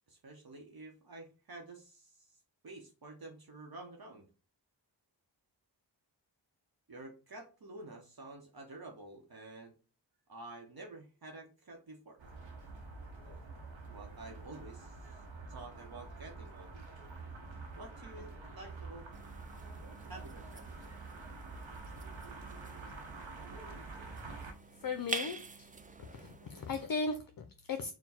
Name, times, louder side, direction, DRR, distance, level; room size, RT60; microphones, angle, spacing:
voice 1, 0.1-2.4 2.6-4.3 6.9-9.7 10.3-12.2 13.9-15.2 15.5-16.8 17.7-19.1 20.0-20.6, right 2 dB, 55° right, 0.8 m, -50 dB
sound 1, 12.2-24.5, right 3 dB, 90° right, 0.9 m, -47 dB
sound 2, 19.1-26.9, right 4 dB, 20° right, 0.4 m, -47 dB
voice 2, 24.8-25.7 26.0-27.9, left 4 dB, 50° left, 0.5 m, -37 dB
4.4 x 2.2 x 4.2 m
wide cardioid pair, 75°, 45 cm